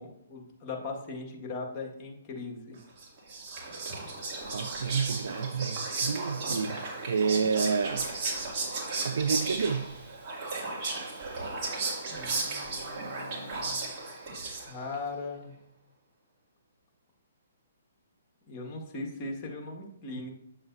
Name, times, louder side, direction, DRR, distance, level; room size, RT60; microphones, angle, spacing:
voice 1, 0.0-2.8 12.1-13.9 14.6-15.5 18.5-20.3, left 3 dB, 25° left, 1.8 m, -39 dB
Whispering, 3.0-15.0, right 3 dB, 35° right, 2.6 m, -35 dB
voice 2, 4.5-8.1 9.0-9.9, right 5 dB, 75° right, 0.5 m, -29 dB
8.8 x 7.2 x 2.7 m
hypercardioid pair, 145°, 0 cm